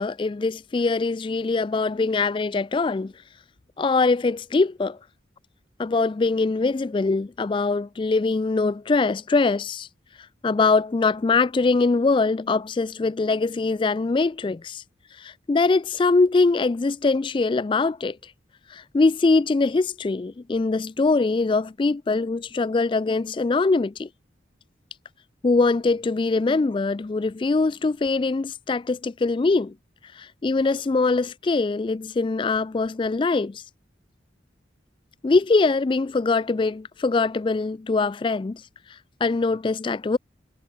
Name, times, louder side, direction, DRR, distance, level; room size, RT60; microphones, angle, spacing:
voice 1, 0.0-3.1 3.8-5.0 5.8-9.9 10.4-14.8 15.2-18.3 18.7-24.1 25.4-29.7 30.2-33.6 35.2-38.6 39.2-40.2, left 3 dB, 25° left, 0.3 m, -22 dB
head